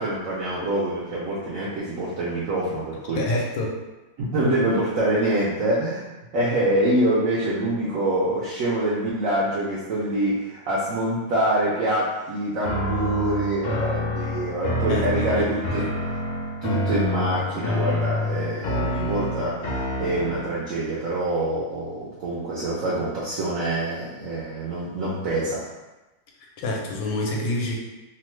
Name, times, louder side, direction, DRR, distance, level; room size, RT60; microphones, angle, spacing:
voice 1, 0.0-3.2 4.2-15.8 16.6-25.6, right 1 dB, 75° right, -7 dB, 0.7 m, -25 dB
voice 2, 3.1-3.8 14.9-15.5 15.8-15.9 26.6-27.8, left 2 dB, 85° left, -1 dB, 1.3 m, -27 dB
sound 1, 12.6-20.7, left 1 dB, 70° left, 1.1 m, -27 dB
3.1 x 2.1 x 3.0 m, 1.1 s
omnidirectional pair, 2.0 m